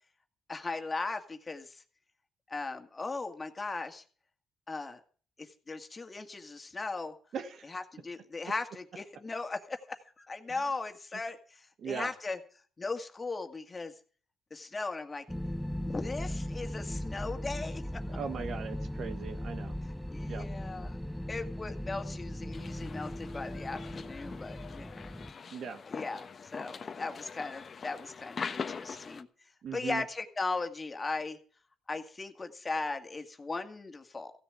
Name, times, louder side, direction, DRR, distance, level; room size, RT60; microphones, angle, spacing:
voice 1, 0.5-1.8 2.5-4.0 4.7-5.0 5.4-7.1 7.7-12.4 12.8-13.9 14.5-15.2 15.8-18.2 20.1-21.0 21.3-25.1 25.8-29.3 29.7-31.4 31.9-34.3, left 3 dB, 25° left, 6 dB, 2.1 m, -38 dB
voice 2, 7.3-7.6 11.8-12.1 18.1-19.7 20.3-20.4 25.5-25.8 29.6-30.0, right 6 dB, 65° right, 9 dB, 1.6 m, -38 dB
sound 1, 15.3-25.3, left 1 dB, 5° left, 0.6 m, -38 dB
sound 2, 22.5-29.2, left 5 dB, 45° left, 1.2 m, -42 dB
15.5 x 7.2 x 8.5 m, 0.43 s
cardioid pair, 90°, 0 cm